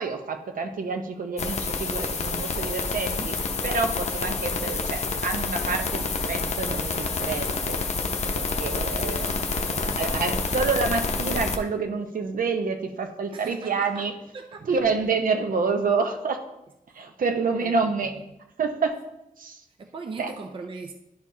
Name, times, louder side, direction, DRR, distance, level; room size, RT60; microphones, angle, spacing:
voice 1, 0.0-3.4 3.6-7.8 8.4-14.1 14.7-16.4 16.9-18.1 18.6-19.0 19.4-19.6 20.2-20.3, right 4 dB, 65° right, 6 dB, 0.8 m, -28 dB
sound 1, 1.4-11.6, left 4 dB, 50° left, 0.7 m, -28 dB
voice 2, 13.3-14.8 17.6-17.9 19.8-20.9, right 4 dB, 35° right, 5 dB, 0.4 m, -40 dB
11.0 x 4.5 x 2.7 m, 0.88 s
wide cardioid pair, 135°, 15 cm